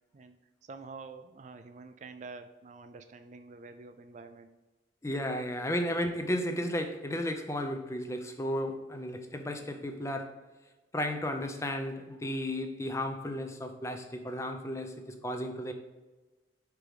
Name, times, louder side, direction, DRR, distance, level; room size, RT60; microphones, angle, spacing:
voice 1, 0.6-4.5, right 4 dB, 40° right, 9 dB, 0.3 m, -47 dB
voice 2, 5.0-10.4 10.9-15.7, left 1 dB, 15° left, 6 dB, 0.5 m, -34 dB
5.0 x 4.7 x 4.9 m, 1.2 s
head